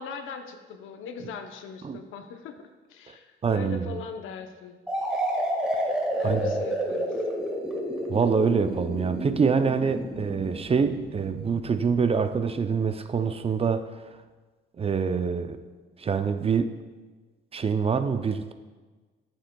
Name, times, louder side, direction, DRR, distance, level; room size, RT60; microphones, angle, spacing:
voice 1, 0.0-4.8 6.2-7.2, left 6 dB, 85° left, 6 dB, 0.7 m, -40 dB
voice 2, 3.4-4.0 6.2-6.4 8.1-13.8 14.8-15.6 16.0-16.7 17.5-18.5, right 5 dB, 30° right, 9 dB, 0.5 m, -25 dB
sound 1, 4.9-12.5, equal, 5° right, 1.6 m, -30 dB
12.0 x 7.2 x 2.2 m, 1.3 s
cardioid pair, 90°, 20 cm